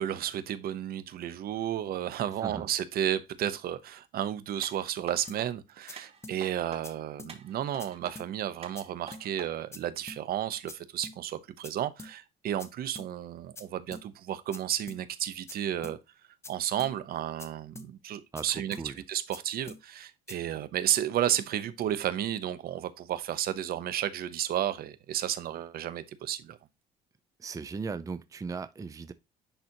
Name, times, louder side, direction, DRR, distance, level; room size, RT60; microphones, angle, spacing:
voice 1, 0.0-16.0 16.5-26.6, right 11 dB, 65° right, 0.9 m, -32 dB
sound 1, 4.6-5.5 6.0-6.8 7.3-8.1 8.6-9.5 10.0-10.1, right 5 dB, 35° right, 2.0 m, -46 dB
sound 2, 5.3-5.4 5.9-6.0 6.2-6.4 6.8-6.9 7.2-7.3 7.8-7.9 8.2-8.3 8.8-8.9 9.1-9.3 9.7-9.8 10.1-10.2 10.7-10.8 11.0-11.2 11.6-11.7 12.0-12.1 12.6-12.7 13.0-13.1 13.6-13.7 13.9-14.1 14.5-14.6 14.9-15.0 15.5-15.6 15.8-16.0 16.4-16.5 16.8-16.9 17.4-17.5 17.8-17.9 18.4-18.5 18.7-18.9 19.3-19.4 19.7-19.8 20.3-20.4, left 2 dB, 15° left, 0.9 m, -45 dB
voice 2, 18.3-19.0 27.4-29.1, right 5 dB, 20° right, 0.5 m, -38 dB
10.0 x 4.1 x 2.9 m
cardioid pair, 110°, 17 cm